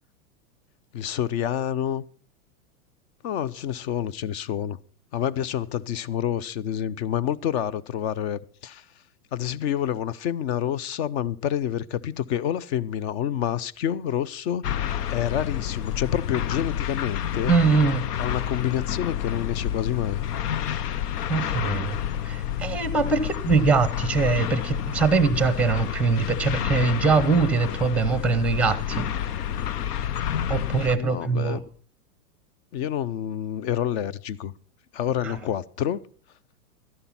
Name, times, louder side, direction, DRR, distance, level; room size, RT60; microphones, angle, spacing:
voice 1, 0.9-2.0 3.2-4.8 5.1-8.8 9.3-14.6 15.1-17.5 18.2-20.2 30.5-30.7 31.0-31.6 32.7-34.5 34.9-36.0, left 10 dB, 45° left, 0.6 m, -28 dB
sound 1, 14.6-31.0, left 10 dB, 90° left, 0.9 m, -29 dB
voice 2, 17.4-18.0 21.3-29.3 30.5-31.7 35.2-35.4, right 4 dB, 5° right, 0.7 m, -23 dB
12.5 x 11.0 x 5.8 m
supercardioid pair, 145°, 45 cm